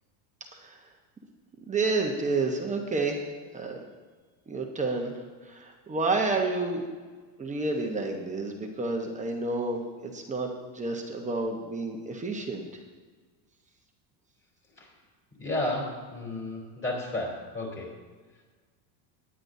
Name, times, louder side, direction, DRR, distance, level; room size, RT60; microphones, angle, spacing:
voice 1, 1.7-3.2 3.5-3.8 4.5-5.1 5.5-6.9 7.4-10.5 10.7-12.7, right 3 dB, 15° right, 2 dB, 1.0 m, -29 dB
voice 2, 15.4-17.9, left 1 dB, 25° left, -3 dB, 3.6 m, -32 dB
19.5 x 9.9 x 2.7 m, 1.4 s
cardioid pair, 150°, 49 cm